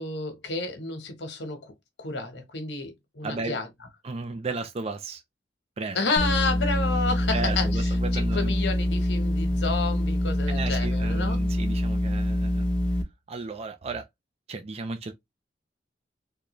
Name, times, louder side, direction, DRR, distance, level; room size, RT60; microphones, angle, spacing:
voice 1, 0.0-1.7 2.0-3.7 5.9-11.4, left 3 dB, 80° left, 1.1 m, -30 dB
voice 2, 3.2-3.6 4.0-5.2 5.8-6.0 7.3-8.5 10.5-12.7 13.3-14.1 14.5-15.1, right 3 dB, 35° right, 0.4 m, -34 dB
sound 1, 6.2-13.0, left 1 dB, 5° left, 0.6 m, -25 dB
3.7 x 2.2 x 3.0 m
head